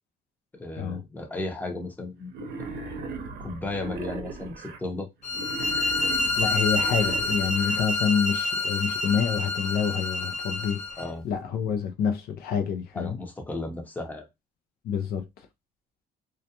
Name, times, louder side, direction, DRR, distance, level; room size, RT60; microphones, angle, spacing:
voice 1, 0.5-2.3 3.4-5.1 11.0-11.2 12.9-14.3, left 2 dB, 10° left, 0.6 m, -34 dB
Wild animals, 2.3-4.8 5.3-7.8, right 4 dB, 75° right, 0.7 m, -37 dB
sound 1, 5.2-11.1, left 2 dB, 45° left, 0.8 m, -28 dB
voice 2, 6.4-10.8 11.2-13.2 14.8-15.3, left 7 dB, 65° left, 0.4 m, -27 dB
2.3 x 2.1 x 2.7 m
cardioid pair, 110°, 17 cm